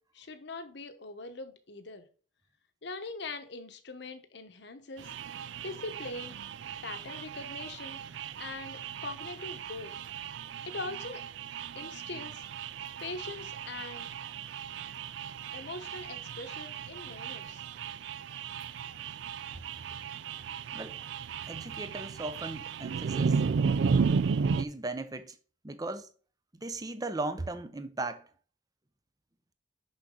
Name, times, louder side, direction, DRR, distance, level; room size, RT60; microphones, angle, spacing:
voice 1, 0.1-2.1 2.8-5.2 5.6-6.4 6.8-8.0 8.4-9.9 10.6-11.2 11.7-12.4 13.0-14.1 15.5-17.6, left 3 dB, 65° left, 1.0 m, -42 dB
sound 1, 5.0-24.6, right 5 dB, 70° right, 0.4 m, -34 dB
voice 2, 21.5-23.4 24.5-25.4 25.6-26.1 26.6-28.2, right 2 dB, 20° right, 0.7 m, -37 dB
6.4 x 6.1 x 3.8 m
head